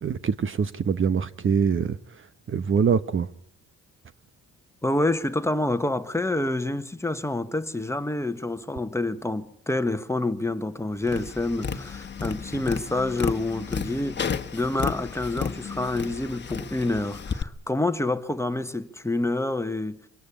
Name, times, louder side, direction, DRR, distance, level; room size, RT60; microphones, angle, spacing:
voice 1, 0.0-2.0 2.5-3.3, right 6 dB, 40° right, 1.0 m, -24 dB
voice 2, 4.8-14.3 14.5-20.0, left 2 dB, 10° left, 1.4 m, -27 dB
Tap, 11.0-17.4, left 6 dB, 35° left, 1.5 m, -32 dB
25.0 x 18.5 x 10.0 m
cardioid pair, 90°, 30 cm